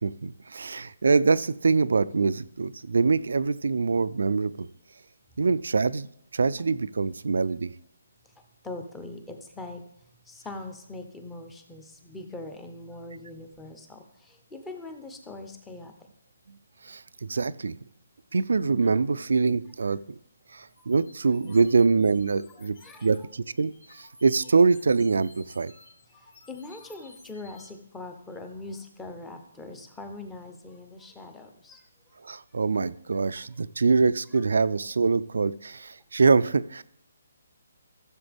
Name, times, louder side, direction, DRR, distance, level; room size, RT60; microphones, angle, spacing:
voice 1, 0.0-4.7 5.4-6.1 6.3-7.7 16.8-17.7 18.3-20.2 20.5-22.8 23.0-25.7 32.2-36.8, right 4 dB, 75° right, 17 dB, 0.4 m, -24 dB
voice 2, 8.6-9.8 10.3-15.9 18.8-18.9 22.8-23.1 26.5-31.8, left 2 dB, 5° left, 5 dB, 0.7 m, -41 dB
sound 1, 20.7-23.2 23.6-27.7, left 3 dB, 60° left, 3.1 m, -54 dB
14.0 x 7.0 x 3.5 m, 0.75 s
hypercardioid pair, 170°, 0 cm